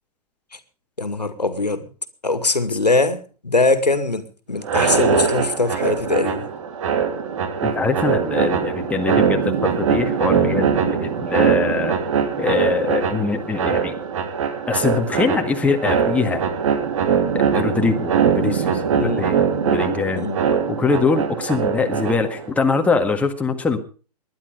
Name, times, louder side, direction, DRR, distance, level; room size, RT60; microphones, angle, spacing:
voice 1, 1.0-1.9 2.2-6.5 10.8-11.0 19.0-19.3 20.1-20.4, left 3 dB, 80° left, 2.2 m, -22 dB
sound 1, 4.6-22.5, right 7 dB, 50° right, 2.8 m, -22 dB
voice 2, 7.6-12.0 12.4-14.0 14.7-16.4 17.3-20.3 20.7-23.8, left 4 dB, 5° left, 1.7 m, -23 dB
20.0 x 11.0 x 5.2 m
figure-of-eight pair, 115°, 21 cm